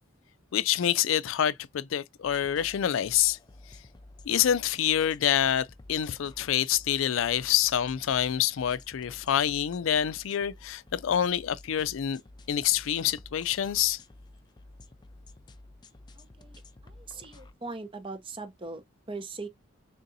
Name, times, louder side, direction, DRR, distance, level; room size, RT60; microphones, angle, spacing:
voice 1, 0.5-3.4 4.3-12.2 12.5-14.0, left 10 dB, 85° left, 0.4 m, -26 dB
sound 1, 2.2-17.5, left 2 dB, 20° left, 0.4 m, -52 dB
voice 2, 16.2-19.5, right 3 dB, 25° right, 0.6 m, -41 dB
4.0 x 3.6 x 2.6 m
head